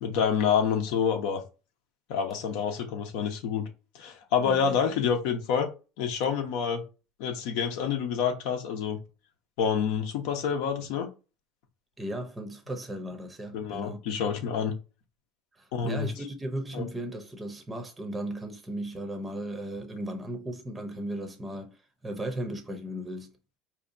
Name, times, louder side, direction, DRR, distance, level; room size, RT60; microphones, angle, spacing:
voice 1, 0.0-1.4 2.1-3.7 3.9-5.7 6.0-6.8 7.2-9.0 9.6-11.1 13.5-14.7 15.7-16.1 16.7-16.8, left 7 dB, 70° left, 0.8 m, -27 dB
voice 2, 4.4-4.8 12.0-14.0 15.5-23.3, right 1 dB, 10° right, 0.7 m, -36 dB
4.4 x 2.8 x 2.6 m
supercardioid pair, 125°, 0 cm